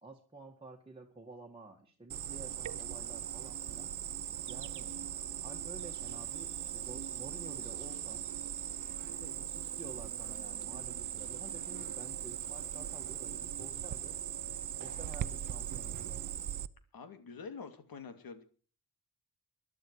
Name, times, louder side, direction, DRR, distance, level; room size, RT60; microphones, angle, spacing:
voice 1, 0.0-3.9 4.5-4.9 5.3-8.2 9.2-14.2 14.8-16.3, right 2 dB, 15° right, -1 dB, 1.9 m, -51 dB
Cricket, 2.1-16.7, right 10 dB, 60° right, 0.7 m, -40 dB
voice 2, 9.2-9.5 16.9-18.4, left 5 dB, 80° left, 9 dB, 2.7 m, -47 dB
21.0 x 11.5 x 4.8 m, 0.41 s
wide cardioid pair, 150°, 35 cm